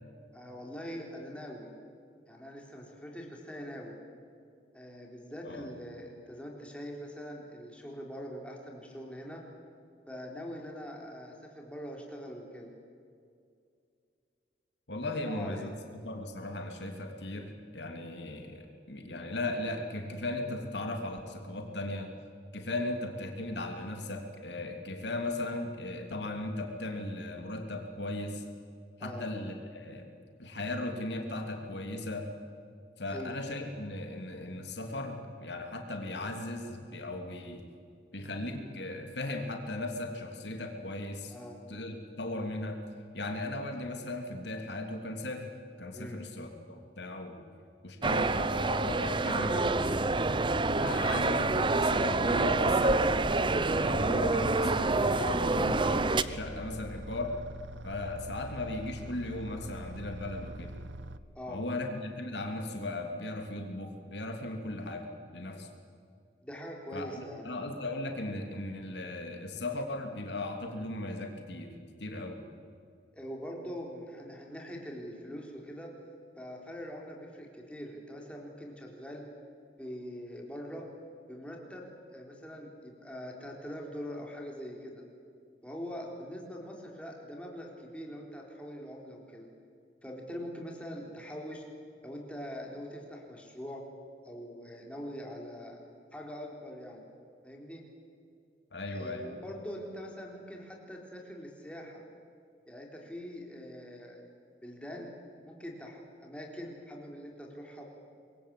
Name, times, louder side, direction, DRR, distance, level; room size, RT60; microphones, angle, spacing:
voice 1, 0.3-1.7 2.3-3.9 4.7-9.4 10.1-12.7 15.2-15.7 22.8-22.9 29.0-29.3 33.1-33.3 41.3-41.6 45.9-46.2 61.3-61.6 66.4-67.5 73.1-75.9 76.4-79.3 79.8-80.9 81.3-85.0 85.6-89.5 90.0-91.6 92.0-93.8 94.2-95.8 96.1-97.1 97.4-97.9 98.9-102.0 102.7-104.2 104.6-105.1 105.4-107.8, equal, 5° left, -1 dB, 4.0 m, -43 dB
voice 2, 14.9-22.1 22.5-28.4 29.0-30.1 30.4-32.3 33.0-37.6 38.1-41.3 41.7-42.8 43.1-45.5 45.8-47.4 47.8-50.0 50.7-53.1 53.7-57.3 57.8-60.7 61.5-65.7 66.9-71.7 72.0-72.4 98.7-99.3, left 2 dB, 70° left, 4 dB, 2.9 m, -37 dB
sound 1, 48.0-56.2, right 3 dB, 25° right, 0.7 m, -27 dB
sound 2, 49.4-61.2, right 1 dB, 75° right, 1.0 m, -44 dB
26.0 x 22.0 x 8.5 m, 2.4 s
head